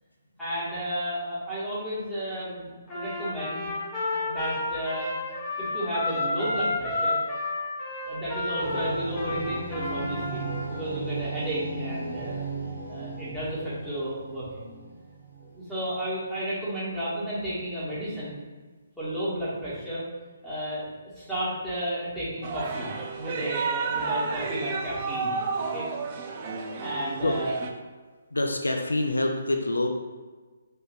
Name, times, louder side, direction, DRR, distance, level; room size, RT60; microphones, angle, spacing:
voice 1, 0.4-3.7 4.1-5.1 5.6-7.2 8.0-10.4 10.7-12.4 12.9-14.7 15.5-18.4 19.0-20.0 20.4-22.9 23.1-25.9 26.8-27.6, right 1 dB, ahead, -13 dB, 1.2 m, -32 dB
Trumpet, 2.9-10.7, left 2 dB, 15° left, 0.9 m, -31 dB
sound 1, 8.6-16.0, right 3 dB, 90° right, 0.9 m, -36 dB
sound 2, 22.4-27.7, right 4 dB, 35° right, 0.3 m, -31 dB
voice 2, 28.3-29.9, left 2 dB, 80° left, 3 dB, 0.3 m, -26 dB
3.4 x 2.6 x 2.5 m, 1.4 s
figure-of-eight pair, 135°, 0 cm